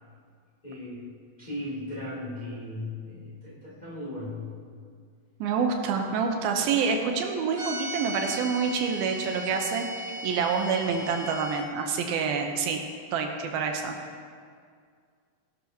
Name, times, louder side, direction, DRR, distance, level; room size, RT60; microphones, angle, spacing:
voice 1, 0.6-1.1 1.4-4.5 12.5-12.7, left 1 dB, 15° left, -7 dB, 2.1 m, -37 dB
voice 2, 5.4-9.9 10.2-12.8 13.1-13.9, right 5 dB, 80° right, 3 dB, 2.6 m, -27 dB
sound 1, 7.5-11.6, right 1 dB, 15° right, 2.8 m, -36 dB
18.0 x 11.5 x 2.9 m, 2.1 s
omnidirectional pair, 4.4 m